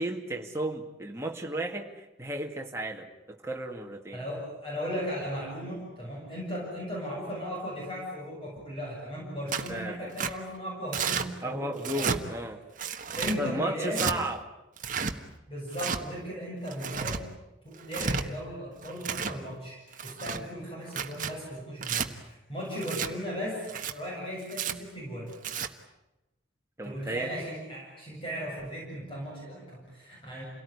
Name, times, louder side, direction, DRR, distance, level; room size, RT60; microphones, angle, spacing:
voice 1, 0.0-4.2 9.7-10.2 11.4-12.6 13.4-14.4 20.3-20.5 26.8-27.3, right 1 dB, 15° right, 1 dB, 2.3 m, -34 dB
voice 2, 4.1-12.2 13.1-14.1 15.5-17.3 17.6-23.6 23.9-25.3 26.8-30.4, equal, 25° left, -4 dB, 7.7 m, -37 dB
Tearing, 9.5-9.7 10.2-10.3 10.9-11.3 11.8-12.2 12.8-13.4 13.9-14.1 14.8-15.1 15.7-16.0 16.7-17.2 17.8-18.2 18.8-19.4 19.9-20.4 20.9-21.3 21.8-22.1 22.8-23.1 23.6-23.9 24.5-24.7 25.3-25.7, right 6 dB, 40° right, 1.4 m, -31 dB
28.5 x 18.0 x 9.8 m, 0.98 s
head